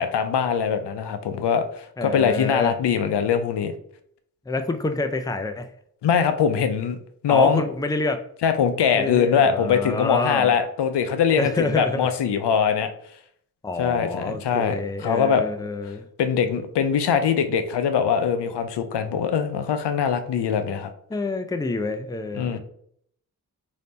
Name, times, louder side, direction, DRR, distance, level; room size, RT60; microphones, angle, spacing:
voice 1, 0.0-1.6 2.0-3.7 6.0-7.0 7.2-7.6 8.4-12.9 13.8-15.4 16.2-20.9 22.3-22.6, left 7 dB, 80° left, 8 dB, 0.5 m, -22 dB
voice 2, 2.0-2.7 4.5-5.7 7.3-8.2 8.9-10.5 11.4-12.1 13.6-16.1 21.1-22.5, left 2 dB, 10° left, 7 dB, 0.4 m, -27 dB
3.2 x 2.7 x 4.1 m, 0.66 s
cardioid pair, 45°, 40 cm